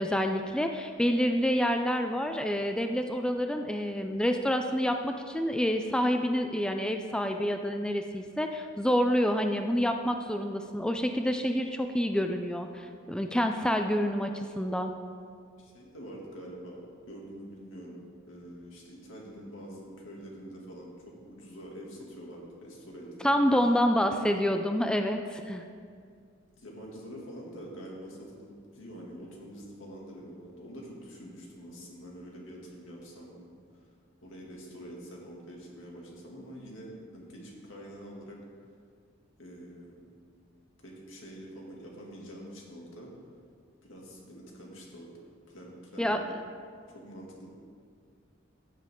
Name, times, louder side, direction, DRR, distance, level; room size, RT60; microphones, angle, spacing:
voice 1, 0.0-14.9 23.2-25.6 46.0-46.2, equal, 5° left, 5 dB, 0.4 m, -28 dB
voice 2, 15.6-18.0 18.3-23.6 26.6-33.5 34.2-38.4 39.4-39.9 40.8-43.1 43.8-45.1 45.5-46.2 46.9-47.5, equal, 80° left, -2 dB, 2.3 m, -46 dB
15.5 x 7.5 x 3.7 m, 2.2 s
head